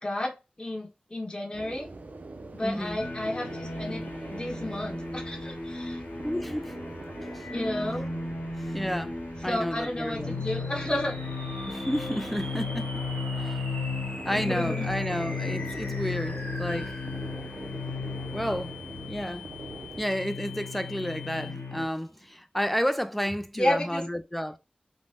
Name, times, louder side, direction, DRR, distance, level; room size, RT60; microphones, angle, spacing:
voice 1, 0.0-1.9 2.5-6.0 7.5-8.1 9.5-11.2 14.3-14.9 23.6-24.0, left 1 dB, 30° left, 0.8 m, -32 dB
sound 1, 1.5-20.0, right 2 dB, 65° right, 0.4 m, -43 dB
voice 2, 2.6-3.0 6.2-6.8 7.2-7.5 7.8-7.9 8.6-10.4 11.7-13.0 13.3-13.7 14.2-17.0 18.3-18.8 19.1-19.5 20.0-24.6, equal, 5° left, 0.3 m, -31 dB
sound 2, 3.0-21.9, left 3 dB, 85° left, 1.0 m, -35 dB
sound 3, 10.4-21.9, left 2 dB, 60° left, 1.0 m, -43 dB
2.7 x 2.1 x 3.2 m
wide cardioid pair, 50°, 3 cm